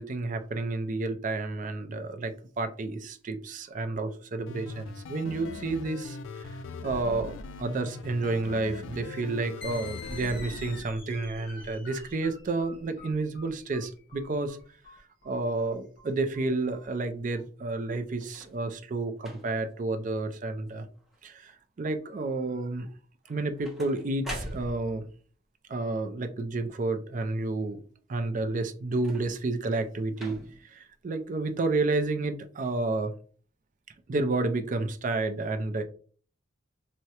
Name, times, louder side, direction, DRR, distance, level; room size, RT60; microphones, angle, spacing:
voice 1, 0.0-6.6 6.8-14.6 15.2-20.9 21.2-22.9 23.3-25.1 25.7-27.8 28.1-33.1 34.1-35.8, right 2 dB, 40° right, 0.4 m, -30 dB
sound 1, 4.5-10.8, left 3 dB, 75° left, 0.4 m, -41 dB
sound 2, 9.6-16.8, left 4 dB, 50° left, 1.1 m, -47 dB
sound 3, 18.2-18.6 19.2-19.7 20.3-20.7 21.0-21.5 23.2-25.1 28.9-29.6 30.2-30.7 31.6-31.7, equal, ahead, 0.6 m, -43 dB
4.6 x 2.1 x 2.8 m
head